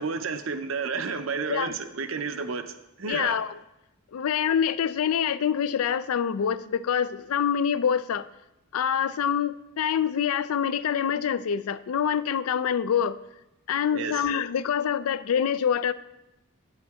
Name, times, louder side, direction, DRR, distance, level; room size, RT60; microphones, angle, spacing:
voice 1, 0.0-3.4 13.9-14.3, right 5 dB, 65° right, 9 dB, 0.6 m, -31 dB
voice 2, 3.1-3.5 4.1-8.3 8.7-13.2 13.7-15.9, left 8 dB, 75° left, 15 dB, 0.4 m, -26 dB
8.8 x 7.6 x 3.5 m, 0.90 s
head